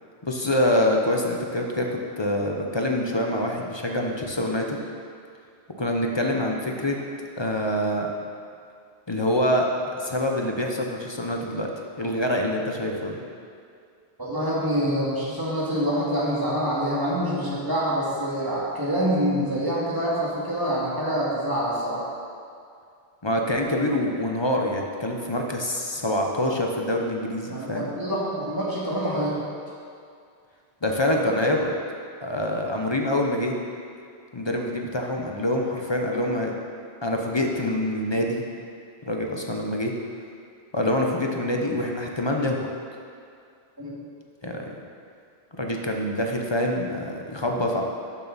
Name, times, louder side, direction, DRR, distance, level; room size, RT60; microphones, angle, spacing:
voice 1, 0.2-4.8 5.8-7.0 7.4-8.1 9.1-9.7 10.0-11.7 12.0-13.2 23.2-27.9 30.8-31.7 32.2-33.5 34.3-36.5 37.0-38.4 39.1-39.9 40.7-42.7 44.4-44.7 45.6-47.8, left 1 dB, 30° left, 1 dB, 0.7 m, -25 dB
voice 2, 14.2-22.0 27.5-29.3 43.8-43.9, equal, 20° right, -7 dB, 2.2 m, -26 dB
12.0 x 7.1 x 4.1 m, 2.3 s
omnidirectional pair, 1.1 m